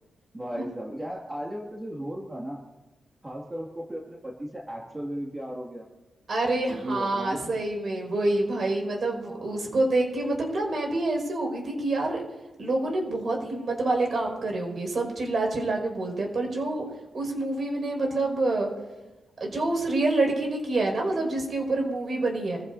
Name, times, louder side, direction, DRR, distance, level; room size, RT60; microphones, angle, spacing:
voice 1, 0.3-2.6 3.2-5.9 6.7-7.5 9.2-9.8, equal, 20° right, -3 dB, 2.2 m, -36 dB
voice 2, 6.3-12.2 12.6-16.8 17.1-18.7 19.4-22.6, right 2 dB, 50° right, 1 dB, 5.6 m, -27 dB
26.5 x 15.0 x 2.7 m, 1.1 s
cardioid pair, 105°, 0 cm